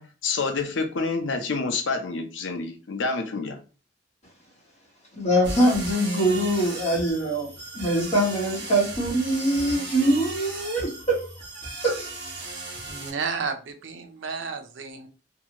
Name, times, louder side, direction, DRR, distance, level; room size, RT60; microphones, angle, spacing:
voice 1, 0.0-3.6, left 4 dB, 80° left, 0.6 m, -28 dB
voice 2, 5.2-7.5 7.7-11.3 11.8-12.0, right 1 dB, 40° left, 1.2 m, -23 dB
sound 1, 5.4-13.1, right 2 dB, 65° right, 0.9 m, -36 dB
voice 3, 12.9-15.1, right 5 dB, 90° right, 0.5 m, -32 dB
2.7 x 2.3 x 2.8 m
head